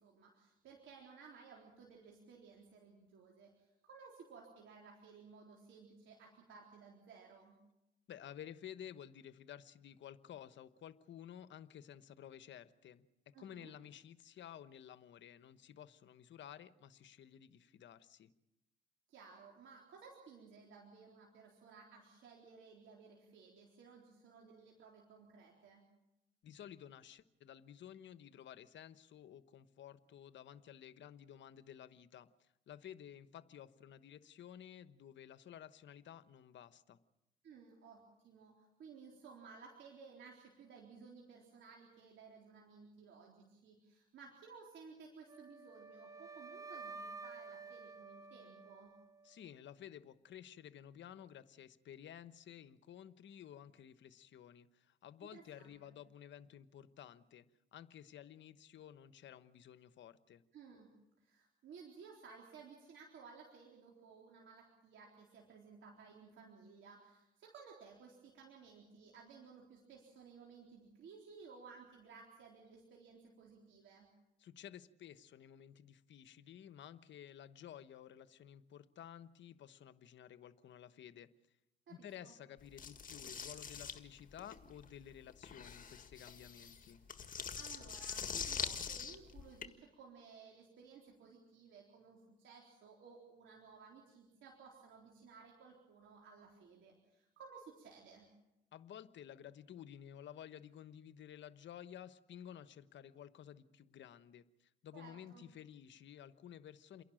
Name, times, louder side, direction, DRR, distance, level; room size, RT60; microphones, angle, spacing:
voice 1, 0.0-7.6 13.3-13.7 19.1-25.8 37.4-48.9 55.3-56.0 60.5-74.1 81.9-82.3 87.5-98.3 104.9-105.4, right 5 dB, 70° right, -1 dB, 4.0 m, -57 dB
voice 2, 8.1-13.1 13.4-18.3 26.4-37.0 49.2-57.5 57.7-60.4 74.4-81.3 81.9-87.0 98.7-107.0, left 10 dB, 65° left, 14 dB, 1.1 m, -54 dB
Wind instrument woodwind instrument, 45.3-49.4, right 4 dB, 15° right, 0.9 m, -51 dB
sound 1, 82.8-89.7, left 6 dB, 45° left, 1.8 m, -44 dB
28.5 x 11.5 x 9.0 m, 0.92 s
cardioid pair, 90°, 20 cm